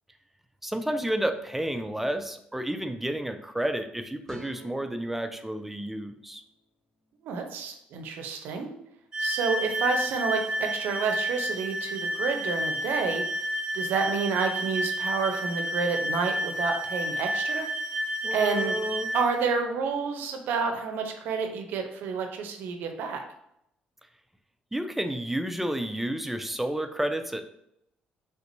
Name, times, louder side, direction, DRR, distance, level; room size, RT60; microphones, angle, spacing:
voice 1, 0.6-6.4 18.2-19.1 24.7-27.4, right 1 dB, 5° right, 8 dB, 0.4 m, -31 dB
sound 1, 4.3-7.5, equal, 10° left, 1.0 m, -52 dB
voice 2, 7.2-8.7 9.2-13.2 13.7-17.7 18.3-18.8 19.1-23.2, right 5 dB, 75° right, 5 dB, 0.5 m, -29 dB
sound 2, 9.1-19.3, equal, 20° right, 1.0 m, -30 dB
3.4 x 2.9 x 2.6 m, 0.77 s
supercardioid pair, 70°, 3 cm